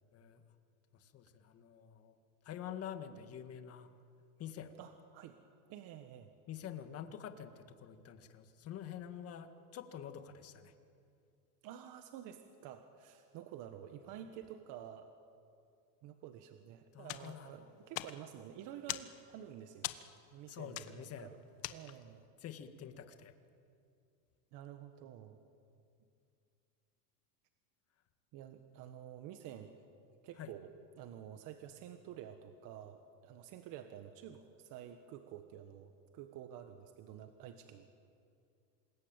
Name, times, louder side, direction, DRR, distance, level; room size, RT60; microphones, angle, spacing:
voice 1, 0.9-2.1 2.4-3.9 4.4-4.7 6.5-10.7 16.9-17.7 20.5-21.3 22.4-23.3 30.3-30.5, left 9 dB, 30° left, 8 dB, 1.8 m, -47 dB
voice 2, 4.8-5.4 5.7-6.3 11.6-15.1 16.0-19.9 20.3-21.4 21.7-22.2 24.5-25.4 28.3-29.8 30.2-30.7 31.0-37.9, right 10 dB, 40° right, 7 dB, 1.5 m, -50 dB
sound 1, 17.0-22.2, left 17 dB, 45° left, 1.3 m, -45 dB
27.5 x 21.0 x 9.0 m, 2.4 s
supercardioid pair, 145°, 49 cm